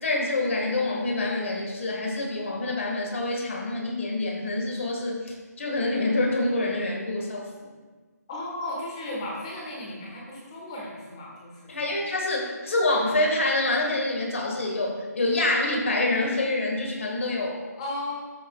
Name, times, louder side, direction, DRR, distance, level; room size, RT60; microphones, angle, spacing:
voice 1, 0.0-7.7 11.7-17.6, left 2 dB, 50° left, 0 dB, 1.8 m, -26 dB
voice 2, 8.3-11.9 17.8-18.1, left 1 dB, 20° left, -3 dB, 1.5 m, -35 dB
13.0 x 6.4 x 2.4 m, 1.3 s
hypercardioid pair, 175°, 9 cm